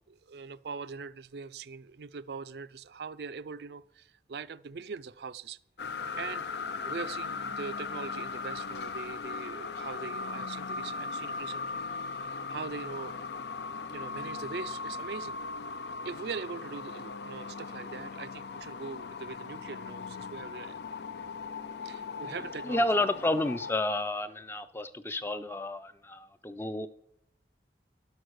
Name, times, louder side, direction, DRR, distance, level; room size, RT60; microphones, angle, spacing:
voice 1, 0.1-5.6 6.2-6.5 6.9-13.3 13.9-15.4 16.0-20.8 21.8-23.1, right 5 dB, 70° right, 0.4 m, -42 dB
sound 1, 5.8-23.7, left 4 dB, 75° left, 0.5 m, -38 dB
voice 2, 22.2-26.9, left 2 dB, 15° left, 0.4 m, -31 dB
11.0 x 6.5 x 6.3 m
head